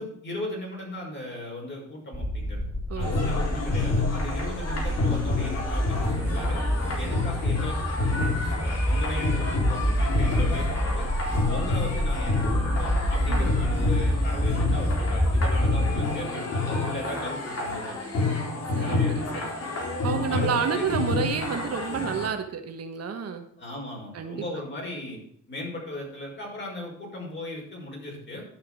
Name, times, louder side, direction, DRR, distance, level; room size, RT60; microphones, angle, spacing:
voice 1, 0.0-2.6 2.9-6.6 6.9-11.1 11.5-18.0 18.3-18.4 18.8-19.7 20.3-20.9 23.6-25.2 25.5-28.4, left 1 dB, 40° left, -1 dB, 5.5 m, -37 dB
sound 1, 2.1-16.0, equal, ahead, 1.5 m, -27 dB
voice 2, 2.9-3.3 13.3-13.5 18.7-19.4 20.0-23.4 24.1-24.4, right 6 dB, 55° right, 7 dB, 1.3 m, -30 dB
sound 2, 3.0-22.3, left 3 dB, 55° left, 4.1 m, -29 dB
11.5 x 6.4 x 6.3 m, 0.66 s
cardioid pair, 90°, 30 cm